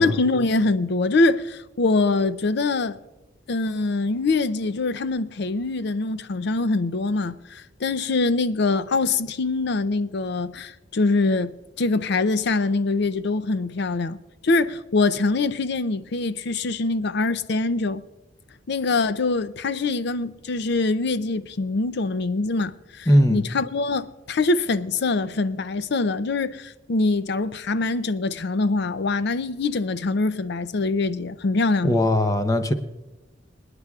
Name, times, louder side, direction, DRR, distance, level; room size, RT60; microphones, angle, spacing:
voice 1, 0.0-3.0 3.5-14.2 14.4-18.0 18.7-32.0, left 3 dB, 60° left, 0.5 m, -24 dB
voice 2, 23.1-23.4 31.8-32.7, left 1 dB, 20° left, 0.8 m, -19 dB
27.5 x 9.7 x 2.4 m
head